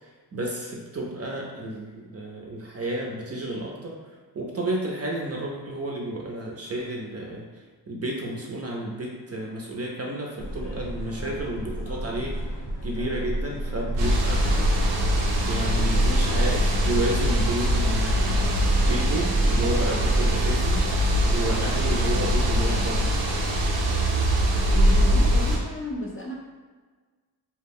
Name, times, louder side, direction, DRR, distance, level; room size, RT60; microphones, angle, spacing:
voice 1, 0.0-3.9 4.3-7.5 7.9-14.6 15.5-20.8 21.3-23.2, right 1 dB, 35° right, -1 dB, 0.5 m, -31 dB
sound 1, 10.4-22.8, right 1 dB, 75° left, 0.7 m, -32 dB
sound 2, 14.0-25.6, equal, 85° right, 0.6 m, -22 dB
voice 2, 24.7-26.3, left 1 dB, 30° left, -2 dB, 0.6 m, -33 dB
2.2 x 2.0 x 3.5 m, 1.4 s
cardioid pair, 55°, 43 cm